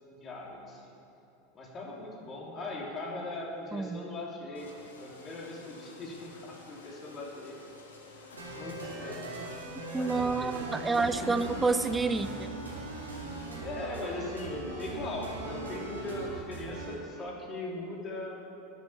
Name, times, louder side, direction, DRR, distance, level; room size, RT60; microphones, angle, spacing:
voice 1, 0.1-0.9 1.5-7.6 8.5-9.2 9.9-10.6 11.0-11.3 13.1-18.4, left 2 dB, 35° left, -2 dB, 3.4 m, -40 dB
sound 1, 4.5-13.5, left 3 dB, 80° left, 1.8 m, -51 dB
sound 2, 8.4-16.9, right 2 dB, 85° right, 2.5 m, -40 dB
voice 2, 9.9-12.3, right 4 dB, 15° right, 11 dB, 0.7 m, -28 dB
12.0 x 7.7 x 8.8 m, 2.7 s
figure-of-eight pair, 85°, 0 cm